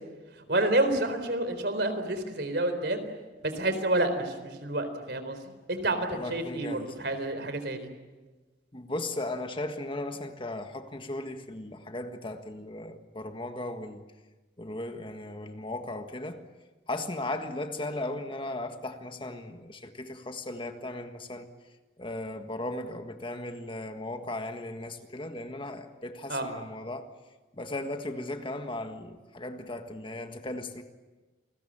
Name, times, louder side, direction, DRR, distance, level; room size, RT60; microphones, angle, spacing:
voice 1, 0.5-3.0 3.4-5.4 5.7-7.9 26.3-26.5, right 1 dB, 65° right, 4.0 m, -29 dB
voice 2, 6.1-6.9 8.7-14.0 14.6-16.4 16.9-21.5 22.0-27.1 27.5-30.8, left 2 dB, 30° left, 1.6 m, -37 dB
29.0 x 21.0 x 8.8 m
head